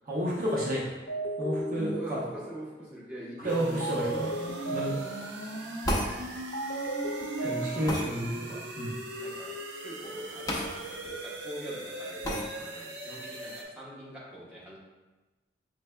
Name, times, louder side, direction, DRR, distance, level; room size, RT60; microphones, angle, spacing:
voice 1, 0.1-0.9 1.4-2.2 3.4-4.1 4.7-5.0 7.4-8.9, equal, 50° right, -5 dB, 0.7 m, -31 dB
sound 1, 1.1-2.8 3.8-5.5 6.5-8.2, right 2 dB, 90° left, 0.6 m, -35 dB
voice 2, 1.8-5.5 7.4-8.0 9.2-9.5 9.8-14.8, equal, 5° right, -8 dB, 1.0 m, -44 dB
sound 2, 3.5-13.6, right 1 dB, 85° right, 0.5 m, -39 dB
sound 3, 5.8-6.1 7.9-8.1 10.5-10.7 11.0-11.1 12.2-12.4, equal, 20° left, 0.6 m, -29 dB
5.1 x 3.3 x 2.2 m, 1.2 s
head